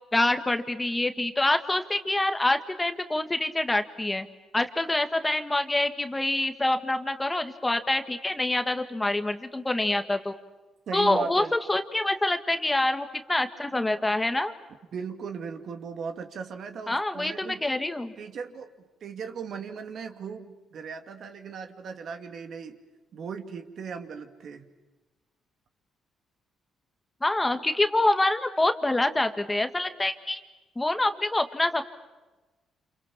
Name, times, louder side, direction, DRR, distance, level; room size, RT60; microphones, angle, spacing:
voice 1, 0.1-4.3 4.5-10.3 10.9-11.4 11.7-14.5 16.9-18.1 27.2-30.4 30.7-31.8, left 2 dB, 15° left, 8 dB, 1.6 m, -26 dB
voice 2, 10.9-11.5 14.9-17.7 18.2-22.8 23.1-24.7, right 6 dB, 60° right, 6 dB, 2.5 m, -37 dB
29.0 x 27.5 x 7.3 m, 1.2 s
cardioid pair, 90°, 0 cm